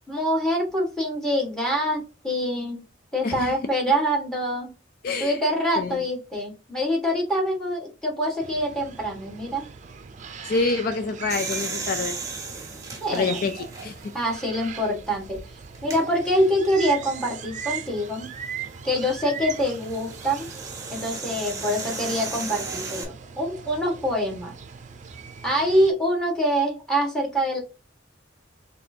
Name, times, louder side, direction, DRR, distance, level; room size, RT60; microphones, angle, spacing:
voice 1, 0.1-2.8 3.1-4.7 5.2-9.6 13.0-13.4 14.1-15.4 15.8-18.3 18.8-20.5 20.9-24.5 25.4-27.6, equal, 5° left, -1 dB, 1.5 m, -25 dB
voice 2, 3.2-3.6 5.0-5.4 5.8-6.0 10.4-12.2 13.1-14.0, left 4 dB, 50° left, 8 dB, 0.4 m, -27 dB
sound 1, 8.4-25.9, right 7 dB, 40° right, 0.5 m, -40 dB
sound 2, 11.3-14.2 14.8-14.9 15.7-16.0 18.2-23.0, right 4 dB, 15° right, 0.9 m, -35 dB
4.1 x 3.3 x 2.7 m, 0.30 s
head